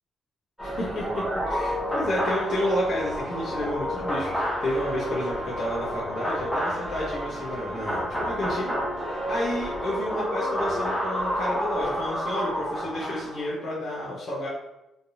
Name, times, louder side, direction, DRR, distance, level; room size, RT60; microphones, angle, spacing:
voice 1, 0.6-1.2 1.5-8.8 9.3-14.5, left 1 dB, 40° left, -7 dB, 0.7 m, -30 dB
sound 1, 0.6-13.5, equal, ahead, 0.9 m, -30 dB
Wind instrument woodwind instrument, 2.5-11.4, equal, 20° right, 0.6 m, -42 dB
3.2 x 2.8 x 2.6 m, 0.93 s
cardioid pair, 165°, 0 cm